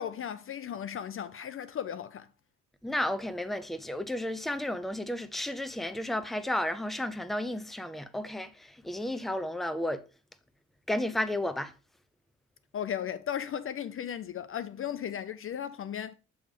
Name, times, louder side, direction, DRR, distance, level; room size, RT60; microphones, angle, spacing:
voice 1, 0.0-2.3 12.7-16.1, left 9 dB, 45° left, 0.5 m, -36 dB
voice 2, 2.8-10.0 10.9-11.7, left 1 dB, ahead, 0.6 m, -32 dB
7.8 x 3.5 x 5.0 m
cardioid pair, 90°, 30 cm